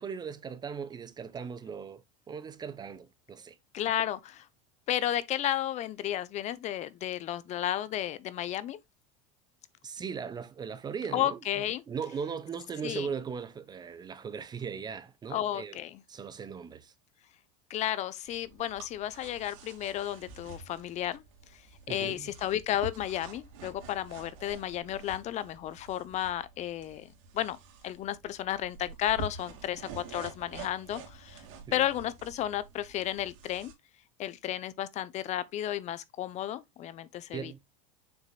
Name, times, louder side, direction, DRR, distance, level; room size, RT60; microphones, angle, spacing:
voice 1, 0.0-2.0 2.3-3.6 9.8-11.4 11.9-15.8 16.1-16.9 21.9-22.3 31.7-31.9 37.3-37.6, right 6 dB, 25° right, 0.9 m, -38 dB
voice 2, 3.7-4.5 4.9-8.8 11.1-11.8 12.8-13.1 15.3-16.0 17.7-21.2 21.5-21.6 21.9-27.6 27.8-31.4 31.7-33.7 34.2-37.6, left 12 dB, 40° left, 0.7 m, -33 dB
sound 1, 18.2-33.7, right 4 dB, 70° right, 2.7 m, -48 dB
7.2 x 6.2 x 2.3 m
supercardioid pair, 115°, 18 cm